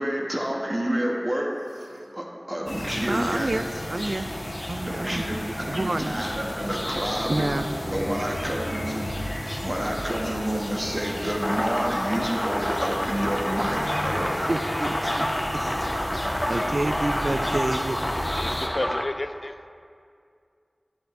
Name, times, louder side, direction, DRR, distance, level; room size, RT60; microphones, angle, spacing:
voice 1, 0.0-1.5 2.1-3.5 4.9-7.5 7.9-9.1 9.6-14.3, equal, 30° right, -1 dB, 1.2 m, -29 dB
sound 1, 1.5-4.2 7.5-10.6 13.5-16.7, equal, 85° right, 1.2 m, -45 dB
sound 2, 2.7-18.7, left 1 dB, 40° left, 1.3 m, -33 dB
voice 2, 3.1-4.3 4.7-5.2 5.6-6.1 7.3-7.7 14.5-15.3 16.5-18.0, right 2 dB, 65° right, 9 dB, 0.3 m, -28 dB
sound 3, 11.4-19.0, equal, 5° left, 0.7 m, -29 dB
voice 3, 18.4-19.7, left 2 dB, 60° left, 10 dB, 0.3 m, -31 dB
10.5 x 10.0 x 2.6 m, 2.3 s
wide cardioid pair, 50°, 0 cm